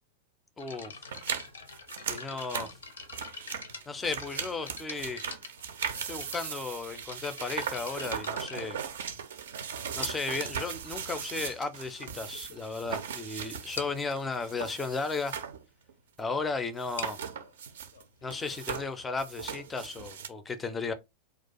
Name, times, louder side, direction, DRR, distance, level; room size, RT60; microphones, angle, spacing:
sound 1, 0.6-9.4 10.0-10.4 11.3-11.4 12.0-12.1 12.3-12.6 12.9-13.0 13.2-13.3 13.8-14.1 16.7-20.2, left 4 dB, 70° left, 0.5 m, -45 dB
voice 1, 0.6-0.9 2.1-2.7 3.9-5.2 6.1-8.8 9.9-15.3 16.2-17.2 18.2-20.9, left 4 dB, 15° left, 0.4 m, -35 dB
sound 2, 1.1-15.6 15.9-16.0 16.8-18.0 18.3-20.3, right 7 dB, 60° right, 0.4 m, -38 dB
2.3 x 2.2 x 3.9 m
figure-of-eight pair, 90°, 0 cm